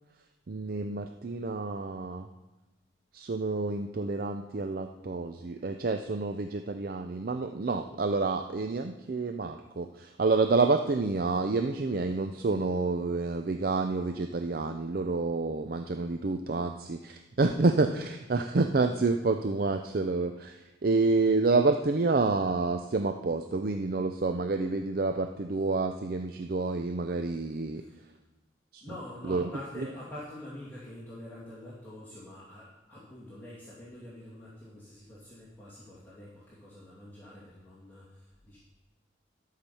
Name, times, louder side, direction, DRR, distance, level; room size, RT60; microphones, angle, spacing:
voice 1, 0.5-2.3 3.1-20.6 20.8-27.8 28.7-28.8 29.3-29.5, right 3 dB, 50° right, 6 dB, 0.5 m, -28 dB
voice 2, 27.7-28.0 28.8-38.6, left 1 dB, 10° left, -10 dB, 2.4 m, -46 dB
12.0 x 5.8 x 7.0 m, 1.1 s
head